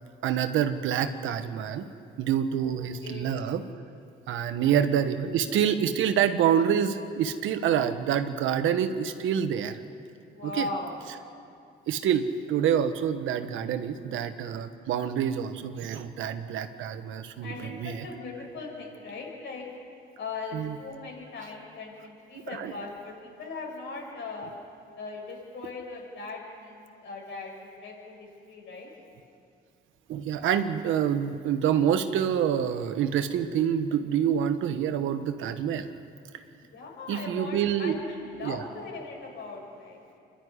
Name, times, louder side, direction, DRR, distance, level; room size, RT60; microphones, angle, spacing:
voice 1, 0.2-1.9 2.2-3.6 4.3-9.8 10.6-10.7 11.9-18.0 20.5-20.7 22.5-22.7 30.1-35.9 37.1-38.0 38.4-38.6, right 9 dB, 85° right, 9 dB, 1.3 m, -27 dB
voice 2, 3.0-3.4 4.6-4.7 10.3-11.0 13.8-14.3 17.4-19.7 20.2-24.5 24.9-27.5 27.8-28.9 36.6-40.0, left 3 dB, 70° left, -1 dB, 6.5 m, -39 dB
25.5 x 12.0 x 9.7 m, 2.5 s
cardioid pair, 90°, 20 cm